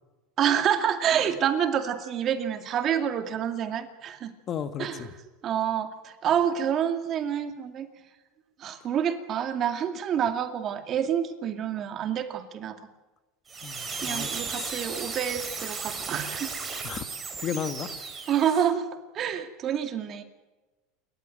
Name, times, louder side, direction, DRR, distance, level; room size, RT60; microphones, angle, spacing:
voice 1, 0.4-4.3 4.8-5.1 5.4-7.9 8.6-12.8 14.0-16.5 18.3-20.2, right 9 dB, 35° right, 8 dB, 2.4 m, -28 dB
voice 2, 4.5-5.1 13.6-14.8 16.8-17.1 17.4-18.0, left 8 dB, 35° left, 11 dB, 1.5 m, -34 dB
sound 1, 13.5-18.7, right 5 dB, 20° right, 4.2 m, -35 dB
29.0 x 14.0 x 9.2 m, 1.1 s
supercardioid pair, 145°, 0 cm